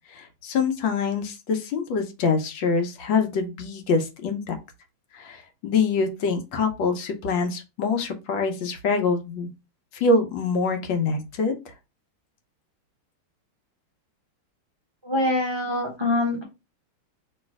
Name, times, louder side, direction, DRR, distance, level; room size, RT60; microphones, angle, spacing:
voice 1, 0.2-4.6 5.2-9.5 9.9-11.5, left 4 dB, 70° left, 6 dB, 1.5 m, -25 dB
voice 2, 15.0-16.4, left 2 dB, 45° right, -1 dB, 0.3 m, -24 dB
3.2 x 3.0 x 4.6 m, 0.26 s
omnidirectional pair, 2.4 m